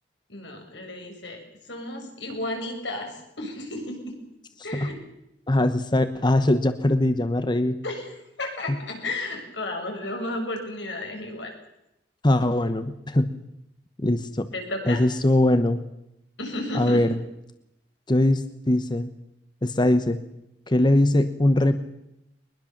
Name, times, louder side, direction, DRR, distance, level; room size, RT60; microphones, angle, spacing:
voice 1, 0.3-1.4 1.7-4.1 4.6-4.9 7.8-8.1 8.4-11.5 14.5-15.0 16.4-17.0, left 1 dB, 85° left, 3 dB, 7.2 m, -33 dB
voice 2, 4.6-4.9 5.5-7.8 8.7-8.8 12.2-13.3 14.0-14.5 14.8-15.8 16.7-17.1 18.1-19.1 19.6-20.2 20.7-21.8, left 1 dB, 25° left, 10 dB, 1.1 m, -21 dB
23.0 x 21.5 x 7.4 m, 0.85 s
head